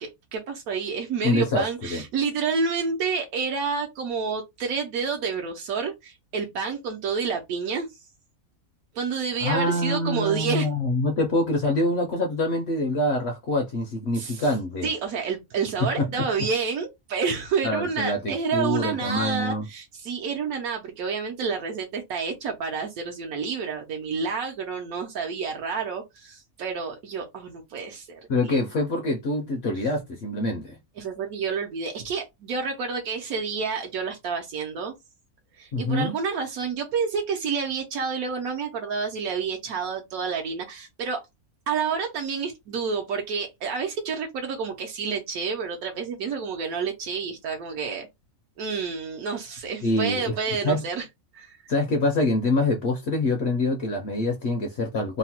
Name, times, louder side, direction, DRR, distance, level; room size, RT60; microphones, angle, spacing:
voice 1, 0.0-7.9 8.9-10.7 14.1-14.5 14.8-28.6 31.0-34.9 35.6-41.2 41.7-48.1 48.6-51.0 51.3-51.6, right 5 dB, 80° right, 1.1 m, -29 dB
voice 2, 1.2-2.0 9.4-14.9 16.0-16.3 17.6-19.6 28.3-30.8 35.7-36.1 49.8-50.4 50.6-50.8 51.7-55.2, left 1 dB, 65° left, 0.7 m, -25 dB
3.0 x 2.0 x 2.8 m
omnidirectional pair, 1.5 m